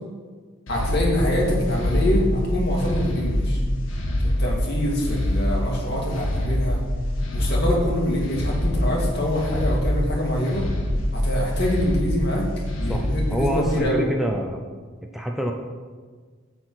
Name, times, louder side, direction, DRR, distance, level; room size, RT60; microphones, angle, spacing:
sound 1, 0.7-13.8, left 1 dB, 85° left, 1.6 m, -25 dB
voice 1, 0.7-3.6 4.4-6.8 7.3-10.6 11.1-12.5 12.8-14.1, left 1 dB, 55° left, -2 dB, 2.4 m, -25 dB
voice 2, 12.9-14.6 15.1-15.5, equal, ahead, 1 dB, 0.6 m, -26 dB
9.8 x 4.6 x 7.7 m, 1.5 s
head